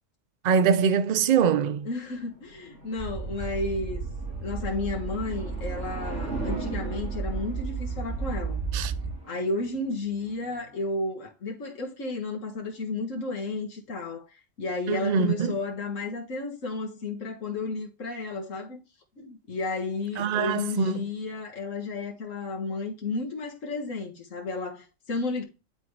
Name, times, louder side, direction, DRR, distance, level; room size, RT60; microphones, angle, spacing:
voice 1, 0.4-1.9 8.7-8.9 14.9-15.6 20.2-21.0, right 7 dB, 50° right, 0.5 m, -23 dB
voice 2, 1.8-4.0 4.4-8.6 9.3-14.3 14.6-18.8 19.2-25.4, left 3 dB, 80° left, 1.9 m, -32 dB
sound 1, 1.8-10.8, right 3 dB, 65° right, 2.9 m, -40 dB
sound 2, 3.0-9.1, right 5 dB, 20° right, 2.6 m, -33 dB
10.0 x 3.9 x 3.3 m
omnidirectional pair, 1.3 m